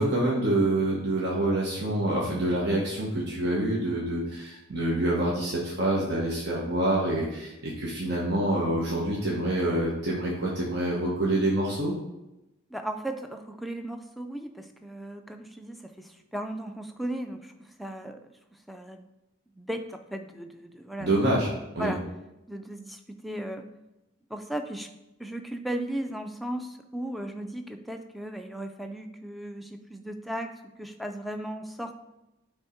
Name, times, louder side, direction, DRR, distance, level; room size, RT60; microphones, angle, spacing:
voice 1, 0.0-11.9 21.0-21.9, right 1 dB, 55° right, -4 dB, 1.2 m, -26 dB
voice 2, 12.7-18.2 18.5-19.1 19.6-21.3 21.8-22.0 22.5-23.7 24.3-24.9 25.2-31.9, right 1 dB, ahead, 6 dB, 0.4 m, -36 dB
8.9 x 3.5 x 4.4 m, 0.95 s
head